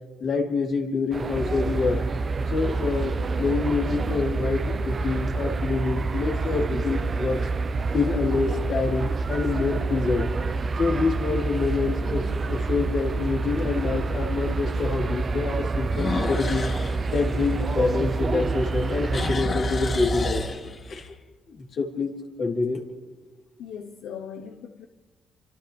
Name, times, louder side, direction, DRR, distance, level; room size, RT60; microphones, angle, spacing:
voice 1, 0.2-2.0 2.5-7.5 7.9-10.3 10.8-16.7 17.1-20.4 20.8-21.1 21.5-22.1 22.4-22.8, left 4 dB, 65° left, 3.8 m, -26 dB
sound 1, 1.1-19.4, right 5 dB, 40° right, 0.6 m, -33 dB
sound 2, 1.3-20.4, right 3 dB, 20° left, 2.0 m, -29 dB
sound 3, 2.2-2.9 3.5-3.6 8.9-9.3 9.8-9.9 10.5-10.6 10.8-10.9 12.4-12.5 15.8-18.4 18.7-21.1, left 3 dB, 45° left, 3.0 m, -32 dB
voice 2, 23.6-24.9, left 7 dB, 85° left, 1.1 m, -39 dB
29.5 x 25.0 x 3.5 m
cardioid pair, 90°, 0 cm